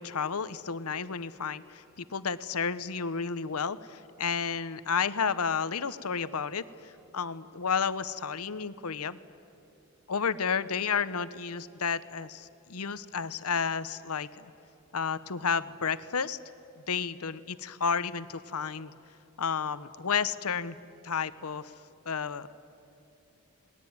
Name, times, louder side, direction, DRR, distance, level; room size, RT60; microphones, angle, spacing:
voice 1, 0.0-9.2 10.1-14.5 14.9-16.4 16.8-18.9 19.4-20.8 21.0-21.7 22.0-22.5, left 6 dB, 85° left, 14 dB, 0.9 m, -31 dB
29.0 x 20.5 x 9.4 m, 2.9 s
head